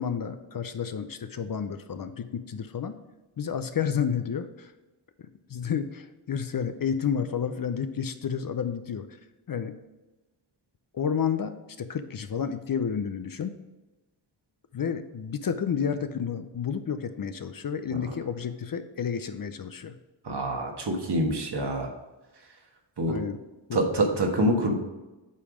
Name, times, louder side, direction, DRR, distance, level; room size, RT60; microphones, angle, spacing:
voice 1, 0.0-3.0 3.4-4.7 5.5-9.1 9.5-9.8 10.9-13.6 14.7-19.9 23.1-23.4 23.7-23.8, left 7 dB, 45° left, 10 dB, 0.6 m, -30 dB
voice 2, 20.2-21.9 23.0-23.1 23.7-24.7, right 1 dB, 55° right, 2 dB, 1.4 m, -26 dB
8.4 x 3.4 x 4.9 m, 1.1 s
cardioid pair, 40°, 47 cm